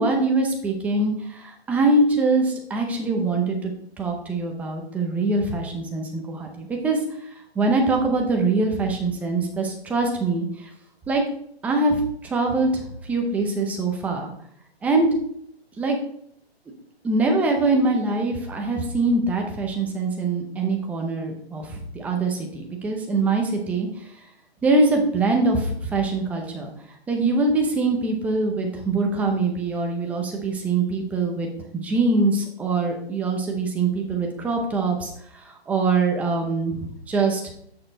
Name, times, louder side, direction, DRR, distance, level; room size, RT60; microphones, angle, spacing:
voice 1, 0.0-3.7 4.0-7.0 7.6-10.5 11.1-11.2 11.6-12.0 12.2-12.8 13.1-14.3 14.8-15.1 15.8-16.0 17.0-23.9 24.6-26.7 27.1-31.5 31.7-35.1 35.7-37.5, right 3 dB, 5° right, 2 dB, 0.6 m, -23 dB
10.5 x 6.4 x 3.3 m, 0.68 s
hypercardioid pair, 155°, 32 cm